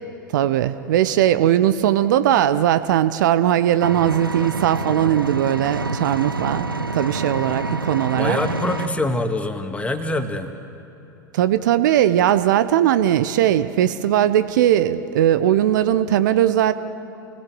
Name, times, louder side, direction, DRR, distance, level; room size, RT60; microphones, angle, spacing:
voice 1, 0.3-6.7 6.9-8.4 11.3-16.7, right 11 dB, 60° right, 12 dB, 0.9 m, -19 dB
Engine, 3.8-8.9, right 3 dB, 90° right, 1.0 m, -27 dB
voice 2, 8.1-10.6, left 2 dB, 10° left, 6 dB, 2.0 m, -24 dB
30.0 x 19.5 x 7.8 m, 3.0 s
figure-of-eight pair, 85°, 11 cm